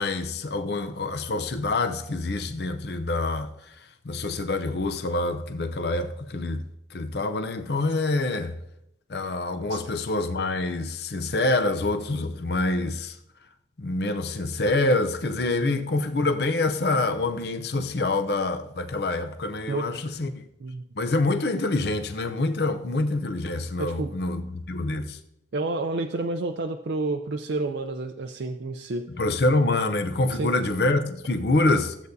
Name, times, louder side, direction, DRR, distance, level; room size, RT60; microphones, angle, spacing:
voice 1, 0.0-3.5 4.0-6.6 6.9-8.6 9.1-13.2 13.8-20.4 21.0-25.2 29.2-32.0, left 2 dB, 70° left, 0.6 m, -26 dB
voice 2, 23.8-24.1 25.5-29.1 30.3-30.5, right 2 dB, 75° right, 0.5 m, -29 dB
14.5 x 8.1 x 2.7 m
head